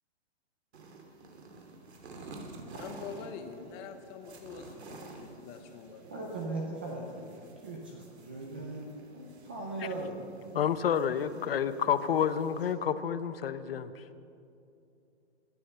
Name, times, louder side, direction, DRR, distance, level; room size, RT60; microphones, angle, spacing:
sound 1, 0.7-12.7, right 3 dB, 70° right, 2.9 m, -50 dB
voice 1, 2.7-6.1, left 6 dB, 15° left, 6 dB, 0.8 m, -45 dB
voice 2, 6.1-10.5, right 2 dB, 10° right, -1 dB, 0.4 m, -39 dB
voice 3, 10.5-13.9, left 8 dB, 60° left, 13 dB, 0.8 m, -29 dB
24.5 x 8.6 x 6.9 m, 2.6 s
hypercardioid pair, 170°, 34 cm